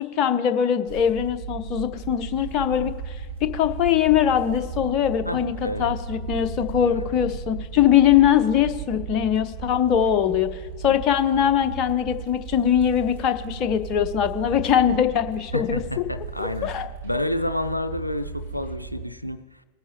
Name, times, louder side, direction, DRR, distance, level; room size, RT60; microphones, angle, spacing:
voice 1, 0.0-3.2 3.4-16.1 16.4-16.9, left 9 dB, 35° left, 9 dB, 0.8 m, -22 dB
sound 1, 0.9-19.0, right 6 dB, 60° right, 2.2 m, -36 dB
voice 2, 5.3-6.0 15.5-16.7 17.0-19.4, left 1 dB, 90° left, 8 dB, 0.4 m, -29 dB
20.5 x 9.7 x 2.9 m, 1.4 s
figure-of-eight pair, 90°, 0 cm